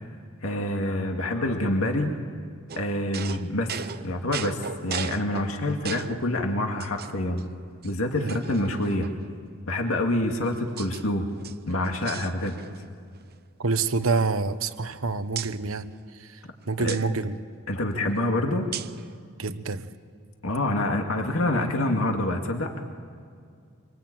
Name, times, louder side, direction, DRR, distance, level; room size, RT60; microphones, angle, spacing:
voice 1, 0.4-2.2 2.8-3.7 4.0-7.4 7.8-9.1 9.7-11.3 11.7-12.6 16.8-17.0 17.7-18.7 20.4-22.7, left 1 dB, 75° left, 3 dB, 2.3 m, -26 dB
sound 1, 2.7-6.3 6.8-7.4 7.8-7.9 8.3-9.3 10.1-11.0 11.3-12.9 13.2-13.4 13.7-15.0 15.4-15.6 16.9-17.1 18.7-19.1, right 8 dB, 50° right, 0.8 m, -38 dB
voice 2, 13.6-15.9 16.2-16.3 16.7-17.4 19.4-19.9, right 4 dB, 75° right, 11 dB, 1.2 m, -27 dB
25.5 x 25.0 x 8.9 m, 2.2 s
head